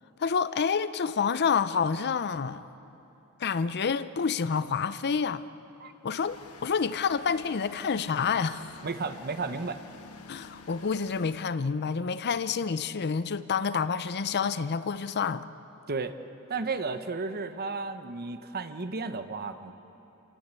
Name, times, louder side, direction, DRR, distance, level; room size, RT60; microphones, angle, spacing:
voice 1, 0.2-2.6 3.4-5.4 6.0-6.4 6.6-8.8 10.3-15.5, left 6 dB, 50° left, 14 dB, 0.6 m, -28 dB
sound 1, 6.1-11.4, left 3 dB, 80° left, 1.5 m, -49 dB
voice 2, 8.8-9.8 15.9-16.2 16.5-19.7, right 4 dB, 45° right, 9 dB, 1.0 m, -33 dB
30.0 x 18.0 x 8.3 m, 3.0 s
head